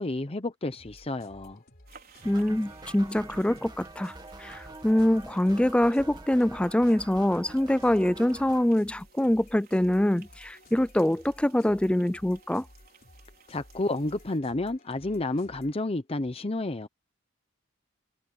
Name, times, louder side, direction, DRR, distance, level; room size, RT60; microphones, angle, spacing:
voice 1, 0.0-1.6 13.5-16.9, left 2 dB, 30° left, 0.8 m, -30 dB
sound 1, 0.7-15.8, left 1 dB, 50° left, 3.6 m, -55 dB
sound 2, 1.9-14.4, right 7 dB, 50° right, 4.6 m, -59 dB
voice 2, 2.2-4.1 4.4-12.6, left 1 dB, 5° left, 0.3 m, -24 dB
sound 3, 2.2-8.7, right 2 dB, 20° right, 2.1 m, -46 dB
head